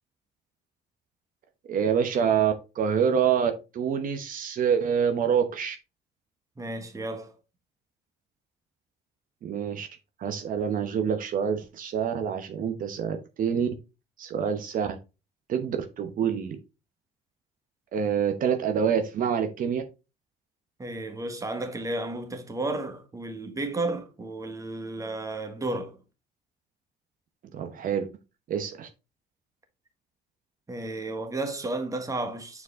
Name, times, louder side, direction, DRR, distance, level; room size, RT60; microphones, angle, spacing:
voice 1, 1.7-5.8 9.4-9.9 10.2-13.7 14.2-15.0 15.5-16.6 17.9-19.8 27.5-28.1 28.5-28.9, right 7 dB, 55° right, 1.0 m, -26 dB
voice 2, 6.6-7.3 20.8-26.0 30.7-32.6, right 2 dB, 20° right, 1.4 m, -33 dB
7.0 x 4.6 x 3.6 m
cardioid pair, 110°, 17 cm